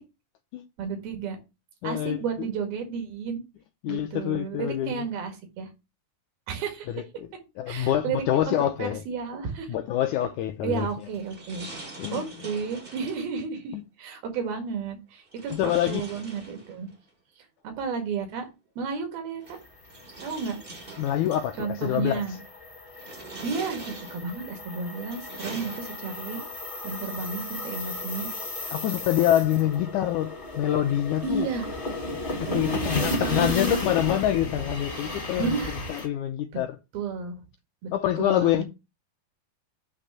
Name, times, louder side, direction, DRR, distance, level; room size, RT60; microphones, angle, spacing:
voice 1, 0.8-1.4 1.8-3.4 3.9-5.7 6.5-6.9 7.7-9.7 10.6-11.7 12.1-16.9 17.8-18.5 18.8-19.6 20.2-20.6 21.6-22.4 23.4-26.4 26.8-28.3 31.2-31.7 32.5-33.8 35.4-35.8 36.9-37.4 37.8-37.9 38.2-38.6, right 5 dB, 90° right, 3.8 m, -32 dB
voice 2, 1.8-2.5 3.8-5.1 6.9-7.3 7.6-9.0 9.7-10.9 12.0-12.2 13.7-13.8 15.5-16.0 21.0-22.2 28.7-30.3 30.5-31.5 32.4-35.6 35.9-36.8 37.9-38.6, left 12 dB, 80° left, 1.8 m, -26 dB
sound 1, 10.8-13.3 15.3-17.0 18.3-18.4 19.4-21.5 22.1-22.5 22.9-24.4 24.9-26.3, right 2 dB, 70° right, 0.5 m, -43 dB
sound 2, 19.6-36.1, left 1 dB, 35° left, 0.8 m, -35 dB
9.8 x 3.3 x 6.7 m
omnidirectional pair, 4.1 m